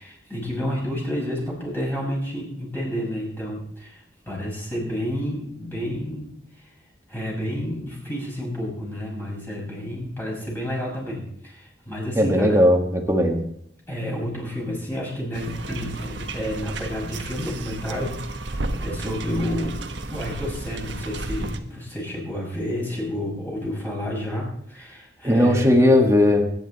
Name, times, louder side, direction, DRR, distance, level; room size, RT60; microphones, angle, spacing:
voice 1, 0.0-6.7 7.1-12.6 13.9-19.8 20.1-25.7, equal, 10° left, -4 dB, 6.4 m, -30 dB
voice 2, 12.2-13.4 25.2-26.5, left 1 dB, 15° right, 2 dB, 2.0 m, -17 dB
sound 1, 15.3-21.6, right 2 dB, 90° right, 1.3 m, -32 dB
21.0 x 10.5 x 4.3 m, 0.69 s
head